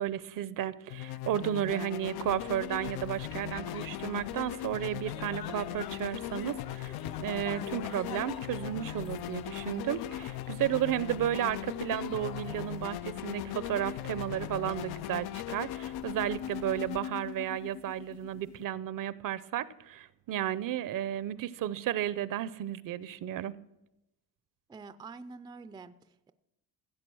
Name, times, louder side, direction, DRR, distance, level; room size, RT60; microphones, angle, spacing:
voice 1, 0.0-23.5, right 11 dB, 60° right, 18 dB, 0.6 m, -33 dB
sound 1, 0.9-18.6, left 14 dB, 85° left, 0.5 m, -39 dB
sound 2, 2.2-17.0, left 8 dB, 70° left, 1.0 m, -47 dB
voice 2, 24.7-26.3, right 4 dB, 10° right, 13 dB, 0.4 m, -47 dB
16.0 x 8.3 x 6.2 m, 0.91 s
cardioid pair, 130°, 37 cm